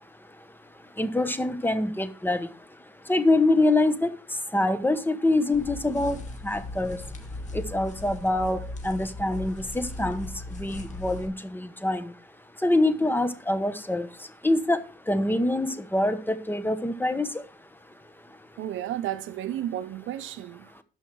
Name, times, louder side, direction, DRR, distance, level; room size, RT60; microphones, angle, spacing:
voice 1, 1.0-2.5 3.1-4.1 4.5-6.2 6.4-7.0 7.5-10.3 10.6-12.1 12.6-14.1 14.4-14.8 15.1-17.3, left 2 dB, 10° left, 1.1 m, -25 dB
sound 1, 5.5-11.3, left 2 dB, 35° left, 2.3 m, -38 dB
voice 2, 18.6-20.7, right 12 dB, 80° right, 0.7 m, -32 dB
13.0 x 5.6 x 4.6 m
cardioid pair, 90°, 20 cm